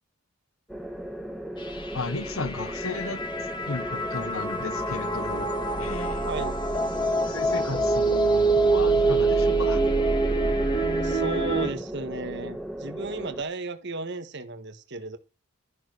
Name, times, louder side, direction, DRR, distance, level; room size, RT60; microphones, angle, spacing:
sound 1, 0.7-13.4, equal, 5° left, 2.5 m, -37 dB
sound 2, 1.6-11.7, right 2 dB, 20° left, 2.5 m, -25 dB
voice 1, 1.9-3.2 3.6-5.5 5.8-6.3 7.2-9.8, left 3 dB, 75° left, 1.3 m, -35 dB
voice 2, 6.3-6.6 11.0-15.2, right 2 dB, 55° right, 1.6 m, -34 dB
13.5 x 11.0 x 6.7 m
head